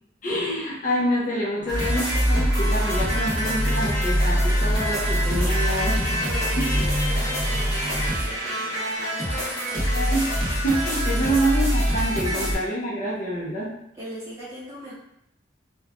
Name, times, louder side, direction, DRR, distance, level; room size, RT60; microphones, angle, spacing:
voice 1, 0.2-6.2 6.6-6.7 9.9-13.7, right 1 dB, 45° left, -4 dB, 0.6 m, -27 dB
sound 1, 1.6-8.1, equal, 70° left, 1.0 m, -34 dB
sound 2, 1.7-12.6, equal, 20° left, 1.1 m, -24 dB
Sink (filling or washing), 4.9-9.8, right 4 dB, 70° right, 0.4 m, -41 dB
voice 2, 6.2-9.9 13.9-14.9, equal, 15° right, -8 dB, 1.0 m, -40 dB
3.1 x 2.1 x 2.4 m, 0.78 s
head